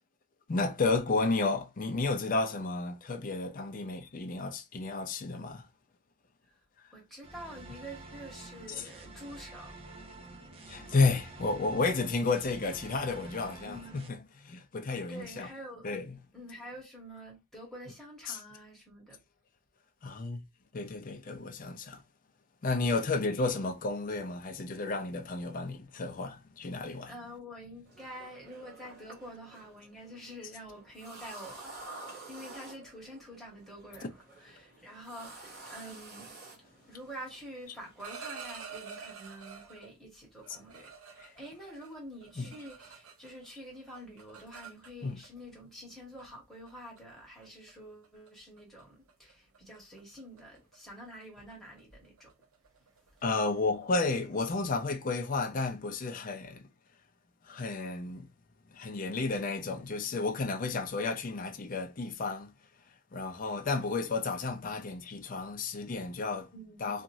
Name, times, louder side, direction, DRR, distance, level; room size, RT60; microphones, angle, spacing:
voice 1, 0.5-5.7 8.8-8.9 10.7-15.5 15.8-16.0 18.3-18.4 20.0-20.4 20.7-22.0 22.6-27.1 41.2-41.3 42.4-42.5 45.0-45.2 53.2-56.6 57.4-58.3 58.7-62.5 63.1-66.5 66.8-67.0, left 3 dB, 40° left, 0.4 m, -32 dB
voice 2, 6.9-9.7 13.6-14.1 15.1-15.9 16.3-19.2 27.1-31.8 32.3-36.3 36.9-52.3 53.0-53.2 66.5-66.9, equal, ahead, 1.2 m, -47 dB
sound 1, 7.2-14.1, right 2 dB, 25° right, 0.5 m, -48 dB
sound 2, 27.9-38.0, right 2 dB, 45° right, 1.4 m, -50 dB
sound 3, 37.8-39.9 40.4-43.5 43.7-45.3 46.2-46.3 46.7-47.0 47.4-47.7 48.0-48.3 48.6-48.8 49.1-54.5, right 6 dB, 80° right, 0.7 m, -49 dB
2.9 x 2.4 x 2.6 m
head